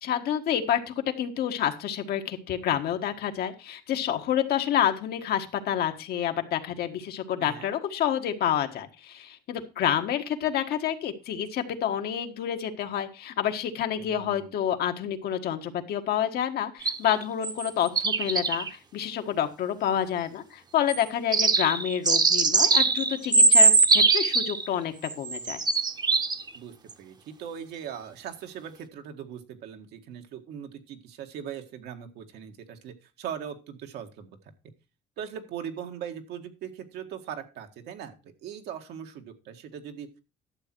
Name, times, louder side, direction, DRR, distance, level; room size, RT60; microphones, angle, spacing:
voice 1, 0.0-25.6, left 10 dB, 70° left, 6 dB, 1.5 m, -28 dB
voice 2, 14.0-14.6 26.5-34.3 35.2-38.1 38.4-40.2, right 8 dB, 80° right, 5 dB, 1.8 m, -40 dB
sound 1, 16.8-17.7 18.0-18.7 20.9-21.0 21.3-24.7 25.0-26.6 26.9-27.0, right 4 dB, 25° right, 1.0 m, -22 dB
12.0 x 7.4 x 4.5 m, 0.30 s
cardioid pair, 110°, 17 cm